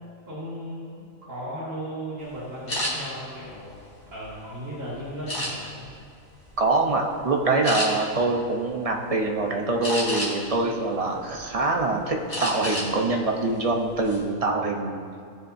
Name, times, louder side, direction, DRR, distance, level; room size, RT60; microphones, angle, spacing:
voice 1, 0.3-0.9 1.3-3.8 4.1-5.9, equal, 70° right, -11 dB, 2.7 m, -36 dB
sound 1, 2.7-2.9 3.6-4.5 5.3-5.9 6.4-6.6 7.0-7.1 7.6-7.9 9.8-10.5 11.0-11.8 12.3-12.9 13.2-13.4 13.8-14.2, left 1 dB, 65° left, 3.2 m, -30 dB
voice 2, 6.6-15.0, right 2 dB, 30° right, 1 dB, 0.9 m, -24 dB
18.5 x 7.0 x 2.7 m, 2.3 s
omnidirectional pair, 1.4 m